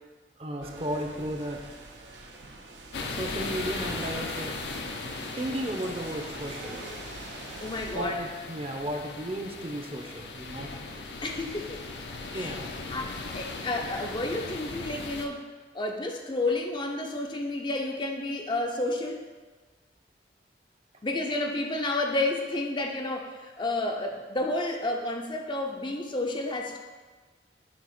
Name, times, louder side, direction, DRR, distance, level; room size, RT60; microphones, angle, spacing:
voice 1, 0.4-1.6 3.2-4.6 5.4-6.8 7.9-10.7 12.3-12.7, right 1 dB, 35° right, 3 dB, 0.7 m, -34 dB
sound 1, 0.6-8.0, right 2 dB, 90° right, 0.9 m, -44 dB
sound 2, 2.9-15.2, left 3 dB, 75° left, 0.7 m, -38 dB
voice 2, 7.6-8.2 11.2-11.8 12.3-12.6 12.9-15.5 15.7-19.2 21.0-26.8, left 2 dB, 25° left, 2 dB, 0.5 m, -31 dB
8.5 x 2.9 x 5.9 m, 1.3 s
head